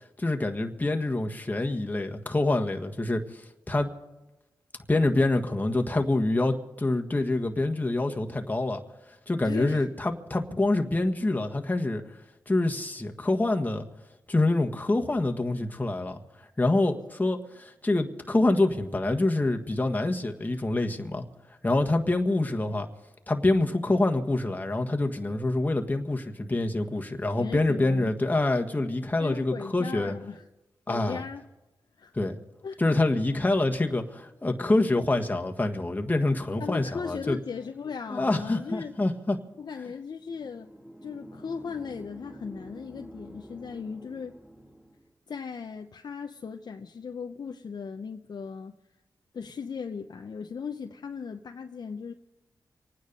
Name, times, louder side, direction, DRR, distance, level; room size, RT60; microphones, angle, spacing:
voice 1, 0.2-3.9 4.9-8.8 9.3-12.0 12.5-13.9 14.3-16.2 16.6-21.2 21.6-22.9 23.3-30.1 30.9-31.2 32.1-32.4 32.8-37.4 38.1-39.4, left 2 dB, 20° left, 3 dB, 1.5 m, -26 dB
voice 2, 9.4-9.9 22.6-22.7 27.4-28.1 29.2-30.5 30.9-31.4 32.0-32.1 32.6-32.8 36.6-39.0 39.6-40.7 41.0-44.4 45.3-48.7 49.3-52.1, left 5 dB, 60° left, 5 dB, 0.7 m, -37 dB
sound 1, 40.2-45.1, equal, 5° right, 1.8 m, -48 dB
25.5 x 9.6 x 5.3 m, 1.0 s
cardioid pair, 65°, 8 cm